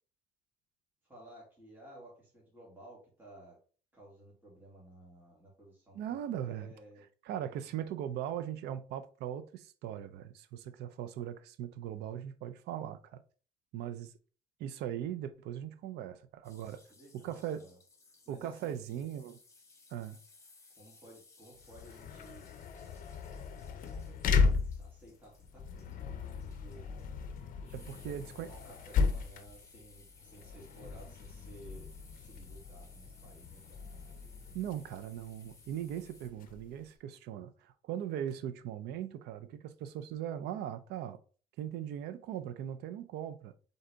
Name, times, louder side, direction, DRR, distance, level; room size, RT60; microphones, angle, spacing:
voice 1, 1.0-3.6 3.9-7.0 16.5-17.8 18.3-18.8 20.8-22.6 24.4-26.8 27.6-31.9 32.1-33.8, right 1 dB, 10° right, 2.1 m, -55 dB
voice 2, 5.9-6.7 7.2-13.2 13.7-14.1 14.6-16.8 17.1-17.6 18.3-19.4 19.9-20.2 27.7-28.5 34.5-41.2 41.6-43.5, right 10 dB, 80° right, 0.5 m, -39 dB
sound 1, 16.4-36.3, left 3 dB, 20° left, 1.3 m, -61 dB
sound 2, 21.6-36.9, left 5 dB, 55° left, 0.6 m, -36 dB
3.9 x 3.8 x 3.4 m
cardioid pair, 110°, 17 cm